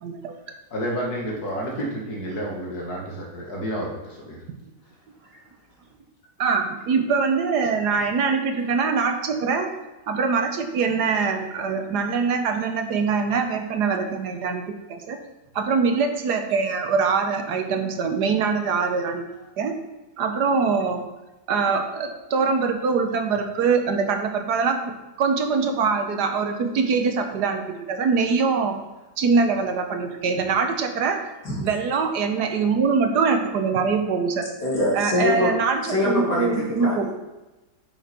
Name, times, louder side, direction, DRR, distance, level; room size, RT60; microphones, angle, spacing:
voice 1, 0.0-0.3 6.4-9.7 10.1-14.6 14.9-15.2 15.5-19.2 19.6-19.8 20.2-21.0 21.5-24.9 25.2-28.8 29.2-31.2 31.6-34.4 34.9-37.1, right 5 dB, 80° right, 5 dB, 1.5 m, -23 dB
voice 2, 0.7-4.4, equal, 70° left, -1 dB, 2.3 m, -30 dB
voice 3, 34.6-35.5 35.8-37.1, left 1 dB, 90° left, -5 dB, 3.4 m, -24 dB
8.8 x 6.0 x 4.4 m, 1.1 s
omnidirectional pair, 1.7 m